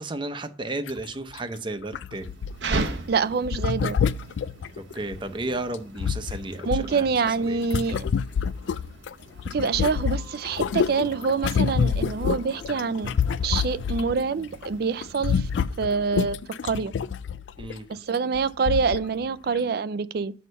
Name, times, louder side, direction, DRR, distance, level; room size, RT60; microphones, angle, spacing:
voice 1, 0.0-2.3 4.7-7.1 7.4-7.6 17.6-17.9, right 2 dB, 25° right, 0.7 m, -33 dB
sound 1, 0.9-1.0 1.3-1.4 1.9-2.9 3.5-5.2 5.7-9.1 9.4-14.2 14.5-14.8 15.0-17.7 18.3-18.4 18.7-19.1 19.6-19.7, left 6 dB, 90° left, 0.3 m, -27 dB
sound 2, 2.1-15.7, right 3 dB, 75° right, 0.8 m, -39 dB
voice 2, 3.1-4.0 6.7-8.1 9.5-13.1 13.4-15.5 15.8-16.4 16.6-16.9 17.9-20.3, right 5 dB, 60° right, 0.4 m, -26 dB
sound 3, 9.3-16.3, left 2 dB, 35° left, 1.5 m, -52 dB
6.4 x 5.5 x 5.3 m
head